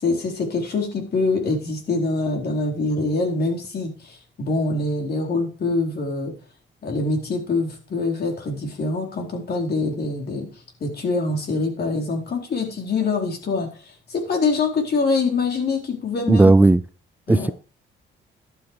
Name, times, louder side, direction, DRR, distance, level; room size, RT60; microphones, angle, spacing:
voice 1, 0.0-6.3 6.8-10.5 10.8-16.5 17.3-17.5, left 3 dB, 55° left, 4.4 m, -24 dB
voice 2, 16.3-16.8 17.3-17.5, right 2 dB, 10° right, 0.4 m, -14 dB
11.5 x 8.1 x 4.9 m
cardioid pair, 90°, 20 cm